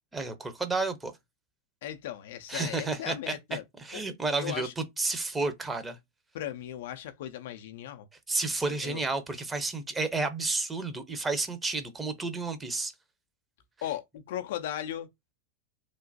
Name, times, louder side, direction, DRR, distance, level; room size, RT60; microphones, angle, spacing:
voice 1, 0.1-1.1 2.5-6.0 8.3-12.9, right 3 dB, 10° right, 0.6 m, -31 dB
voice 2, 1.8-3.6 3.9-4.0 4.4-4.7 6.3-8.1 8.7-9.0 13.8-15.1, left 11 dB, 55° left, 0.4 m, -37 dB
3.1 x 2.1 x 2.6 m
figure-of-eight pair, 90°, 0 cm